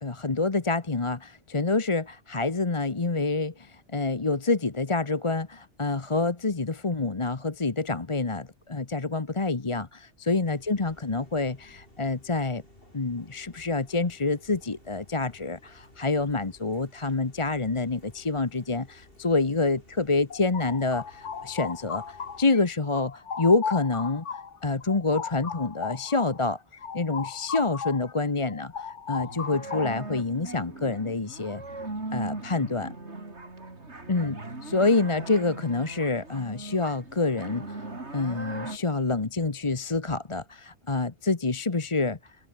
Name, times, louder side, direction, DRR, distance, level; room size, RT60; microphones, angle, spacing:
voice 1, 0.0-12.6 12.9-26.6 26.9-31.6 32.1-32.9 34.1-37.8 38.1-42.4, left 3 dB, 25° left, 1.1 m, -27 dB
sound 1, 10.4-22.6, left 1 dB, 50° left, 7.6 m, -56 dB
sound 2, 20.3-22.6 22.9-28.1 28.4-30.2, left 6 dB, 80° left, 1.8 m, -36 dB
sound 3, 29.2-38.8, right 2 dB, 70° right, 4.2 m, -39 dB
omnidirectional pair, 1.2 m